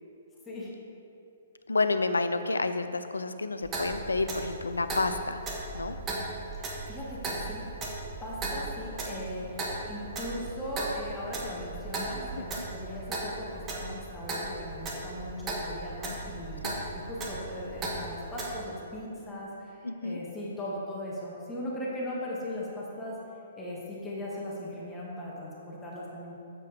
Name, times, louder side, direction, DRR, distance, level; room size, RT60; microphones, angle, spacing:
voice 1, 1.7-5.4 5.7-6.0 12.6-12.7 16.6-16.8 19.8-20.2, left 3 dB, 80° left, 10 dB, 0.5 m, -29 dB
Clock, 3.6-18.6, right 2 dB, 20° right, 1.5 m, -37 dB
voice 2, 6.5-7.9 8.2-16.7 16.9-23.2 23.6-26.3, left 1 dB, 15° left, -6 dB, 1.8 m, -38 dB
7.6 x 7.6 x 4.9 m, 2.7 s
figure-of-eight pair, 120°, 0 cm